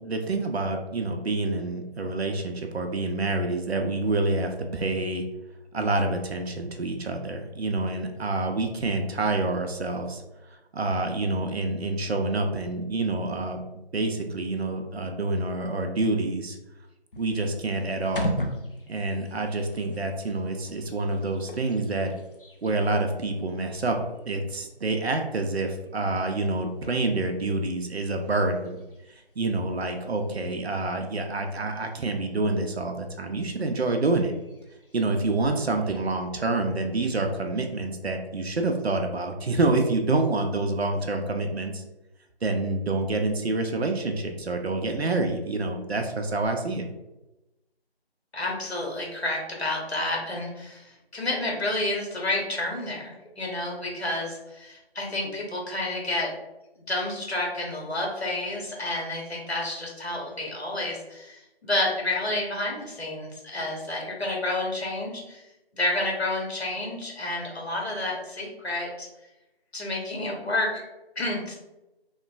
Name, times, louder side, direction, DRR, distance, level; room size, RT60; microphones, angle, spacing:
voice 1, 0.0-5.2 5.7-10.2 10.7-13.6 13.9-16.6 17.2-18.4 18.9-22.1 22.6-24.0 24.2-28.8 29.4-34.3 34.9-41.8 42.4-46.8, right 2 dB, 80° right, 4 dB, 0.5 m, -27 dB
sound 1, 17.1-36.2, left 1 dB, 60° left, 0.5 m, -42 dB
voice 2, 48.3-56.3 56.8-65.4 65.7-69.1 69.7-70.8 71.2-71.5, left 2 dB, 80° left, -1 dB, 1.1 m, -30 dB
3.0 x 2.2 x 2.5 m, 0.97 s
figure-of-eight pair, 180°, 32 cm